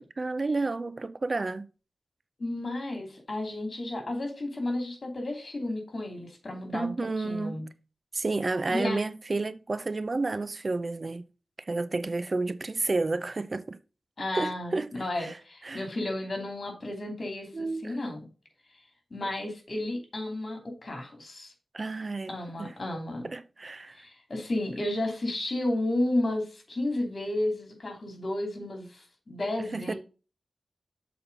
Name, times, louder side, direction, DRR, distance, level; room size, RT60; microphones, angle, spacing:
voice 1, 0.2-1.7 6.7-7.6 8.1-11.2 11.7-13.8 14.3-15.4 15.6-15.9 17.5-18.0 21.7-22.7 23.2-24.1 29.7-29.9, right 3 dB, 45° right, 0.5 m, -31 dB
voice 2, 2.4-7.7 8.7-9.0 14.2-18.3 19.1-21.5 22.3-23.3 23.9-30.0, left 1 dB, 50° left, 2.8 m, -32 dB
7.0 x 4.3 x 5.4 m
wide cardioid pair, 75°, 0 cm